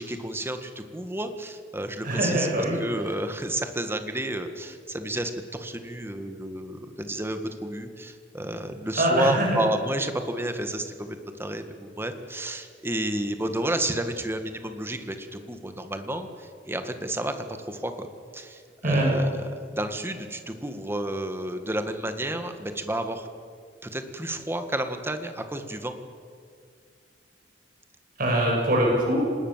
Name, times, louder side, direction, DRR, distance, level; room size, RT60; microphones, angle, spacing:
voice 1, 0.0-18.1 18.3-23.3 23.8-26.0, right 1 dB, 15° right, 7 dB, 1.7 m, -31 dB
voice 2, 2.0-2.8 9.0-9.6 18.8-19.1 28.2-29.2, right 1 dB, 50° right, -1 dB, 7.0 m, -23 dB
26.0 x 20.0 x 7.4 m, 2.2 s
head